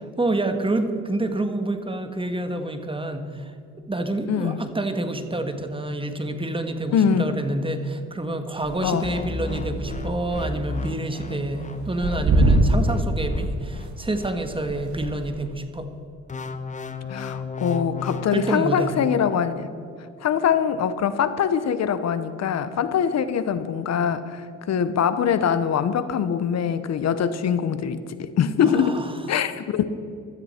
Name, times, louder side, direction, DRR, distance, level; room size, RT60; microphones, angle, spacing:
voice 1, 0.0-3.5 3.9-15.9 18.3-18.9 28.6-29.1, right 2 dB, 15° right, 7 dB, 1.5 m, -28 dB
voice 2, 4.3-4.6 6.9-7.4 8.8-9.1 17.1-19.7 20.2-29.0 29.3-29.9, left 7 dB, 60° left, 12 dB, 0.9 m, -23 dB
sound 1, 8.6-10.6 10.8-10.9 11.4-11.5 12.0-15.3, right 1 dB, 70° right, 1.8 m, -24 dB
sound 2, 9.0-15.6 16.3-18.6, left 3 dB, 25° left, 1.0 m, -34 dB
16.0 x 13.0 x 4.4 m, 2.4 s
cardioid pair, 90°, 30 cm